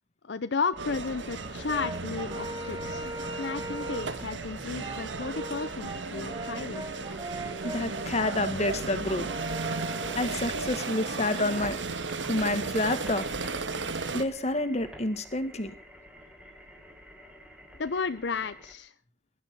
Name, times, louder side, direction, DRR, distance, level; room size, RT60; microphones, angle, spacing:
voice 1, 0.2-3.1 3.4-6.9 17.8-18.9, left 4 dB, 65° left, 12 dB, 0.6 m, -33 dB
sound 1, 0.7-18.7, equal, 5° right, 3.4 m, -48 dB
sound 2, 0.8-14.2, right 4 dB, 80° right, 1.5 m, -35 dB
Brass instrument, 1.7-4.2 4.8-11.8, right 2 dB, 25° right, 1.4 m, -40 dB
voice 2, 7.6-9.3 10.2-11.8 12.3-13.3 14.1-15.7, left 2 dB, 35° left, 10 dB, 1.9 m, -29 dB
19.5 x 11.5 x 4.7 m, 0.39 s
head